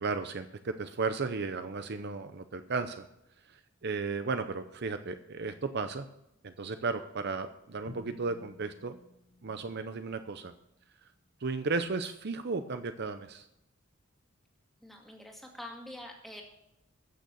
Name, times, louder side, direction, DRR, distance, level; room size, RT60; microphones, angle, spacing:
voice 1, 0.0-3.1 3.5-6.1 6.4-9.0 9.4-10.5 11.4-13.4, right 4 dB, 55° right, 9 dB, 0.6 m, -34 dB
Drum, 7.9-10.8, left 1 dB, 40° left, 1.2 m, -53 dB
voice 2, 14.8-16.4, left 1 dB, ahead, 0 dB, 2.1 m, -45 dB
14.5 x 6.5 x 6.9 m, 0.82 s
head